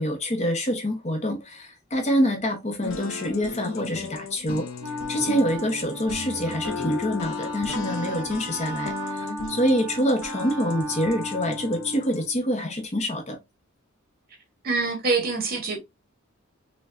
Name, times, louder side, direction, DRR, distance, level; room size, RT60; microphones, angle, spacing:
voice 1, 0.0-4.7 5.1-13.4, equal, 35° left, 0.9 m, -26 dB
sound 1, 2.8-12.3, left 4 dB, 75° left, 0.7 m, -36 dB
Wind instrument woodwind instrument, 4.8-12.3, equal, 15° right, 0.9 m, -36 dB
voice 2, 14.6-15.8, right 3 dB, 45° right, 1.5 m, -25 dB
5.4 x 2.4 x 2.5 m
head